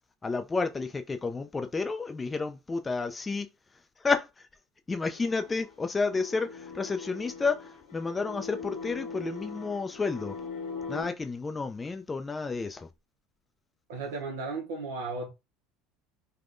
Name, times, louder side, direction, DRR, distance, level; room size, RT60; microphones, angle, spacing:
voice 1, 0.2-3.5 4.0-4.5 4.9-10.4 10.9-12.9, left 4 dB, 20° left, 0.3 m, -31 dB
sound 1, 5.1-11.0, left 5 dB, 90° left, 1.1 m, -41 dB
voice 2, 13.9-15.3, right 3 dB, 85° right, 0.7 m, -35 dB
3.4 x 2.1 x 2.5 m
supercardioid pair, 95°, 0 cm